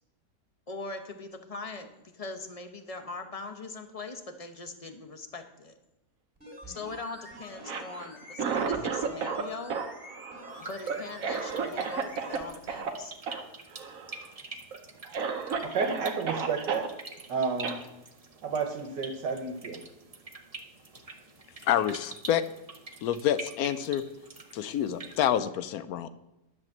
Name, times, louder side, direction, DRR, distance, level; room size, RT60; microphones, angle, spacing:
voice 1, 0.7-5.7 6.7-9.8 10.6-13.1, left 3 dB, 30° left, 7 dB, 0.7 m, -41 dB
sound 1, 6.4-12.4 12.7-12.8, equal, 5° right, 2.5 m, -47 dB
Cough, 7.5-9.4 9.7-12.4 12.7-12.9 13.3-13.4 13.7-14.2 14.7-14.8 15.1-16.9 17.6-17.8, right 5 dB, 55° right, 1.3 m, -32 dB
sound 2, 10.5-25.4, right 3 dB, 30° right, 0.7 m, -46 dB
voice 2, 15.0-16.9 17.3-17.8 18.4-19.8, right 5 dB, 80° right, 4 dB, 1.7 m, -32 dB
voice 3, 21.6-22.4 23.0-24.0 24.5-26.1, left 10 dB, 70° left, 13 dB, 1.0 m, -27 dB
10.5 x 6.2 x 7.3 m, 0.94 s
omnidirectional pair, 1.8 m